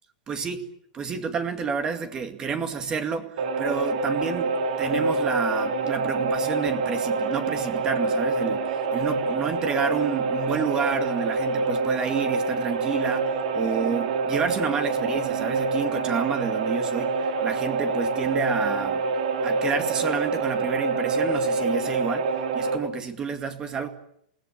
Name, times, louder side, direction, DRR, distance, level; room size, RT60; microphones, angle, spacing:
voice 1, 0.3-0.6 0.9-4.5 4.8-19.0 19.4-23.9, right 6 dB, 15° right, 8 dB, 2.2 m, -30 dB
sound 1, 3.4-22.8, right 4 dB, 60° right, 3.9 m, -26 dB
28.0 x 18.0 x 8.7 m, 0.73 s
supercardioid pair, 165°, 4 cm